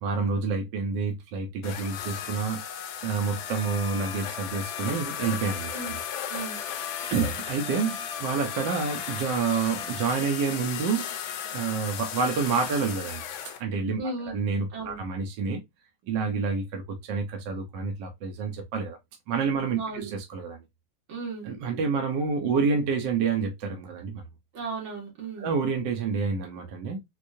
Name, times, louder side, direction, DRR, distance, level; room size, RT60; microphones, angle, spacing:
voice 1, 0.0-2.6 3.0-6.0 7.1-11.0 11.5-13.2 13.6-14.0 14.3-15.6 16.1-19.0 19.3-20.6 21.4-24.2 25.4-27.0, right 5 dB, 70° right, 1.4 m, -28 dB
sound 1, 1.6-13.6, left 8 dB, 85° left, 1.4 m, -35 dB
voice 2, 13.9-14.4 14.7-15.0 19.8-20.1 21.1-21.5 24.5-25.5, right 3 dB, 85° right, 2.4 m, -35 dB
4.5 x 2.4 x 2.6 m
omnidirectional pair, 2.1 m